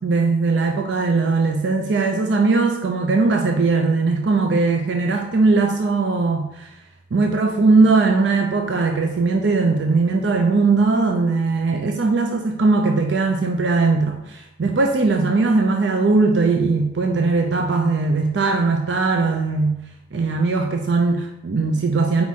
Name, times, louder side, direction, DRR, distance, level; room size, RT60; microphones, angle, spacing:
voice 1, 0.0-6.7 7.1-19.8 20.1-22.2, right 3 dB, 85° right, 4 dB, 0.5 m, -19 dB
4.8 x 4.7 x 4.1 m, 0.86 s
head